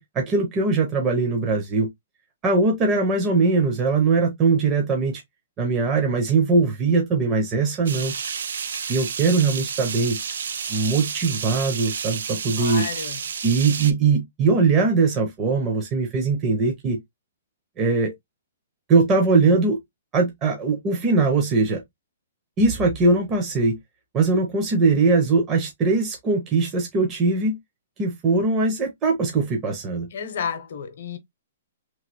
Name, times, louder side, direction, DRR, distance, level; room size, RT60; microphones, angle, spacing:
voice 1, 0.0-1.9 2.4-5.2 5.6-8.1 8.9-10.2 10.7-12.9 13.4-17.0 17.8-18.1 18.9-19.8 20.1-21.8 22.6-23.8 24.1-27.6 28.0-30.1, right 4 dB, 20° right, 0.6 m, -21 dB
sound 1, 7.9-13.9, right 6 dB, 75° right, 0.4 m, -31 dB
voice 2, 12.6-13.2 30.1-31.2, left 7 dB, 55° left, 0.8 m, -31 dB
3.0 x 2.8 x 2.9 m
hypercardioid pair, 170°, 0 cm